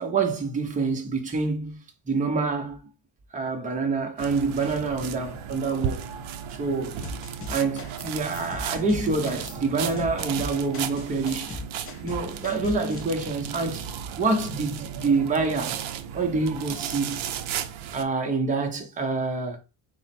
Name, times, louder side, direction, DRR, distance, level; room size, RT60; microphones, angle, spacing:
voice 1, 0.0-1.8 2.1-2.9 3.3-6.0 6.5-7.0 7.5-11.6 12.0-13.9 14.2-15.8 16.1-17.2 17.9-19.6, right 4 dB, 15° right, 0.6 m, -27 dB
sound 1, 4.2-18.0, right 8 dB, 70° right, 0.6 m, -35 dB
sound 2, 7.0-8.1 8.3-13.0, left 3 dB, 25° left, 0.6 m, -38 dB
4.0 x 2.1 x 4.1 m
cardioid pair, 145°, 50 cm